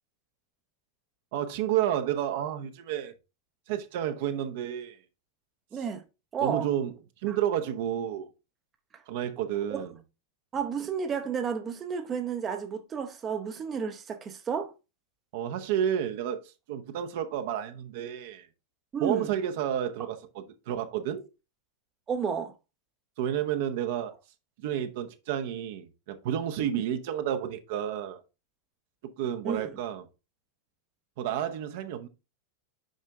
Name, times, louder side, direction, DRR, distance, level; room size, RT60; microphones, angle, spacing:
voice 1, 1.3-3.1 3.7-5.0 6.4-6.9 7.2-8.3 9.1-9.9 15.3-18.5 19.0-21.2 23.2-24.1 24.6-28.2 29.2-30.0 31.2-32.1, right 10 dB, 50° right, 0.9 m, -30 dB
voice 2, 5.7-6.0 6.3-6.7 7.3-7.4 8.9-9.0 9.7-9.8 10.5-14.7 18.9-19.3 22.1-22.5 26.7-26.8 29.4-29.8, right 6 dB, 25° right, 0.8 m, -32 dB
6.5 x 5.5 x 3.5 m
figure-of-eight pair, 90°, 0 cm